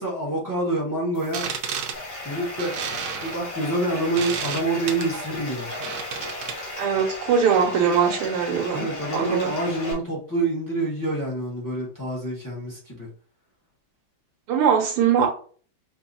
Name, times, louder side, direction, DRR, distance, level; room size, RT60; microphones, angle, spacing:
voice 1, 0.0-1.5 2.2-2.7 3.2-5.7 8.7-13.1, right 2 dB, 10° left, 1.2 m, -27 dB
sound 1, 1.2-6.8, right 6 dB, 65° right, 1.2 m, -33 dB
Bathtub (filling or washing), 1.9-9.9, left 2 dB, 55° left, 2.0 m, -35 dB
voice 2, 6.8-9.5 14.5-15.3, right 7 dB, 85° right, 1.7 m, -21 dB
5.3 x 3.2 x 2.7 m
omnidirectional pair, 2.4 m